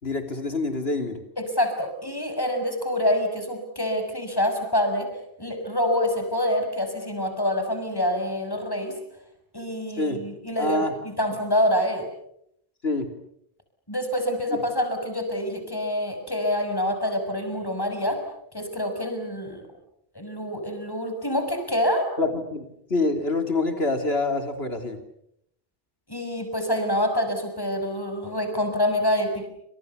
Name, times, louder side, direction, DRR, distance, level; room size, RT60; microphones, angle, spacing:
voice 1, 0.0-1.2 10.0-10.2 10.6-10.9 12.8-13.1 22.2-22.6 22.9-25.0, left 2 dB, 85° left, 6 dB, 3.6 m, -26 dB
voice 2, 1.4-5.1 5.4-8.9 9.5-12.1 13.9-18.2 18.5-19.6 20.1-22.1 26.1-29.5, left 1 dB, 20° left, 6 dB, 6.4 m, -26 dB
29.5 x 27.5 x 7.0 m, 0.75 s
omnidirectional pair, 1.0 m